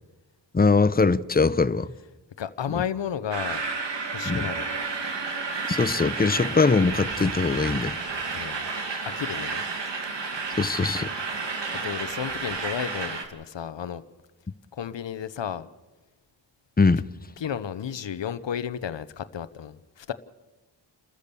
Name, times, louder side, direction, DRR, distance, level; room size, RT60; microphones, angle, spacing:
voice 1, 0.5-1.9 2.7-2.8 4.2-4.5 5.7-8.0 10.6-11.1 16.8-17.1, left 4 dB, 20° left, 0.7 m, -22 dB
voice 2, 2.4-3.6 4.1-4.7 8.3-8.7 9.2-9.6 11.8-14.0 14.7-15.7 17.4-20.1, left 8 dB, 85° left, 0.9 m, -32 dB
sound 1, 3.3-13.2, right 4 dB, 80° right, 2.5 m, -31 dB
30.0 x 14.0 x 6.9 m
wide cardioid pair, 80°, 42 cm